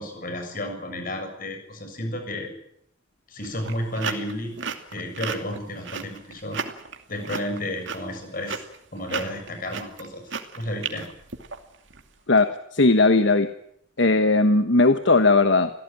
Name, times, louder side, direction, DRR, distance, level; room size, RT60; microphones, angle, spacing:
voice 1, 0.0-2.5 3.3-4.5 4.9-6.6 7.1-8.6 8.9-10.2 10.6-11.1, left 1 dB, 45° left, 5 dB, 7.0 m, -32 dB
sound 1, 3.4-12.0, right 6 dB, 70° right, 2.6 m, -34 dB
voice 2, 12.3-13.5 14.0-15.7, left 3 dB, 70° left, 9 dB, 1.3 m, -18 dB
26.5 x 17.0 x 9.3 m, 0.72 s
head